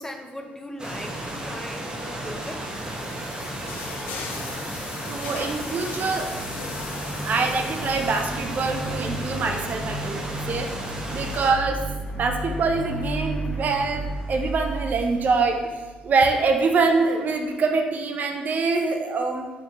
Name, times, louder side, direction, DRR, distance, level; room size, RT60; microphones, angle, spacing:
voice 1, 0.0-2.7 4.5-4.8 10.9-11.2, left 1 dB, 15° left, 4 dB, 0.4 m, -39 dB
sound 1, 0.8-11.5, right 1 dB, 25° right, 0.8 m, -34 dB
sound 2, 2.2-9.7, left 5 dB, 75° left, 0.4 m, -39 dB
voice 2, 5.1-6.3 7.2-11.8 12.1-15.6 16.0-19.5, right 4 dB, 50° right, 4 dB, 0.4 m, -24 dB
sound 3, 6.1-16.3, right 1 dB, 40° left, 1.3 m, -34 dB
4.2 x 3.1 x 2.4 m, 1.2 s
supercardioid pair, 60°, 3 cm